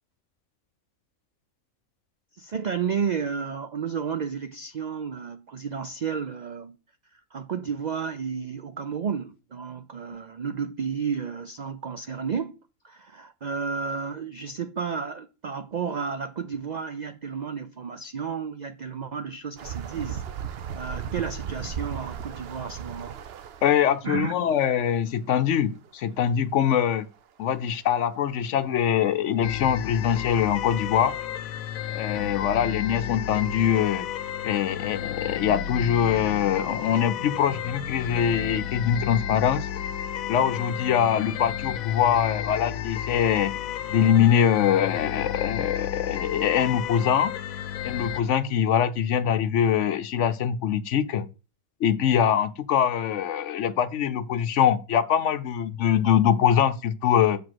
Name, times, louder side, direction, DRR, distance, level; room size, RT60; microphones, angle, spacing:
voice 1, 2.3-6.8 7.1-12.5 12.8-20.2 20.5-23.2 24.0-24.3, right 6 dB, 80° right, 0.4 m, -32 dB
sound 1, 19.6-23.9 25.8-25.9 26.2-26.3 27.1-27.2 29.7-29.8 30.3-30.4 30.9-31.1, right 8 dB, 55° right, 0.8 m, -36 dB
voice 2, 23.6-27.0 27.4-31.2 31.9-34.0 34.4-39.7 40.3-43.5 43.9-47.3 47.8-51.3 51.8-57.4, left 9 dB, 65° left, 0.9 m, -23 dB
sound 2, 29.4-48.2, left 10 dB, 85° left, 1.1 m, -32 dB
7.0 x 4.8 x 6.1 m
omnidirectional pair, 1.4 m